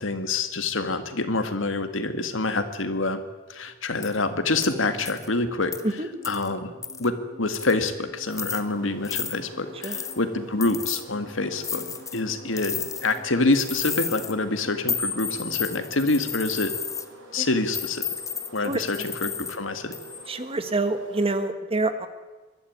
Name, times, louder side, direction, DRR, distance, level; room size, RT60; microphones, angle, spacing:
voice 1, 0.0-3.2 3.5-5.8 6.3-6.7 7.0-11.9 12.1-16.7 17.3-18.0 18.5-19.9, left 3 dB, 75° left, 8 dB, 2.0 m, -26 dB
sound 1, 4.0-4.2 4.6-4.7 5.0-5.3 5.7-5.8 6.2-6.5 6.8-7.1 7.5-7.9 8.3-8.6 9.0-9.3 9.8-10.2 10.6-11.0 11.6-12.2 12.6-13.2 13.5-14.3 14.9-17.0 17.7-19.6 19.9-20.3, left 6 dB, 15° left, 1.1 m, -32 dB
sound 2, 4.5-17.1 17.3-17.4, left 1 dB, ahead, 4.4 m, -50 dB
sound 3, 8.2-21.3, right 1 dB, 70° right, 6.9 m, -47 dB
voice 2, 18.6-19.1 20.3-22.1, right 2 dB, 30° right, 10 dB, 1.6 m, -27 dB
22.5 x 13.0 x 9.6 m, 1.3 s
head